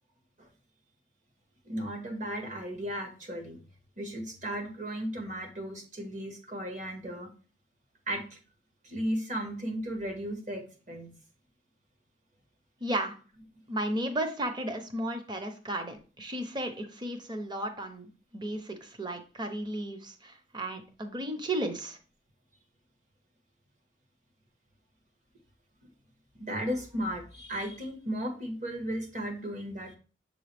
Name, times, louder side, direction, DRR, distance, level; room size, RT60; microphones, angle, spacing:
voice 1, 1.6-3.6 4.0-7.3 8.1-8.4 8.8-11.1 12.8-12.9 26.4-30.0, equal, 45° right, 4 dB, 1.4 m, -35 dB
voice 2, 12.8-13.1 13.7-22.0, right 1 dB, 25° right, 6 dB, 0.8 m, -34 dB
7.4 x 3.8 x 3.4 m, 0.38 s
head